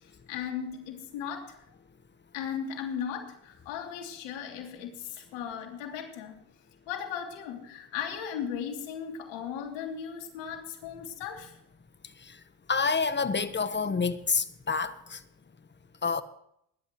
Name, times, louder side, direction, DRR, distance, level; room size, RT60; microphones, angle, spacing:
voice 1, 0.3-1.6 2.3-6.4 6.9-11.5, left 8 dB, 80° left, 3.1 m, -37 dB
voice 2, 12.7-15.2 16.0-16.2, left 5 dB, 25° left, 1.3 m, -28 dB
21.0 x 11.5 x 3.2 m
supercardioid pair, 80°, 44 cm